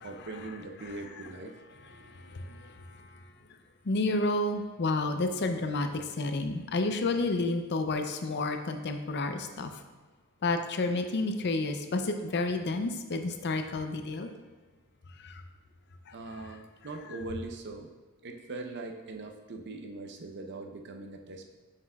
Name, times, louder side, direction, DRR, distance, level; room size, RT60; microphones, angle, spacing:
voice 1, 0.0-1.5 16.1-17.9 18.2-21.6, right 2 dB, 50° right, 4 dB, 0.7 m, -41 dB
voice 2, 3.9-9.7 10.4-14.3 15.2-15.3, left 2 dB, 50° left, 6 dB, 0.5 m, -30 dB
7.3 x 6.6 x 2.3 m, 1.3 s
head